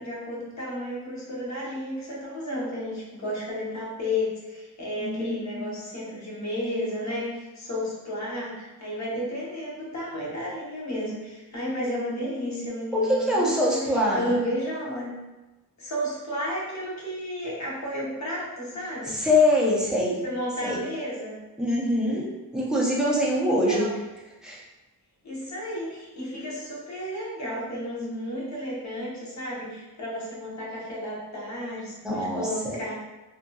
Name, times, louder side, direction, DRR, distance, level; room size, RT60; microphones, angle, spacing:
voice 1, 0.0-13.8 14.1-15.1 15.8-19.1 20.2-21.3 23.4-24.0 25.2-32.9, equal, 45° left, -6 dB, 0.8 m, -32 dB
voice 2, 5.0-5.7 12.9-14.3 19.1-20.2 20.6-20.8 21.6-22.3 22.5-23.9 24.4-24.6 32.0-32.8, left 1 dB, ahead, -5 dB, 0.4 m, -24 dB
2.7 x 2.6 x 2.2 m, 1.1 s
wide cardioid pair, 150°, 38 cm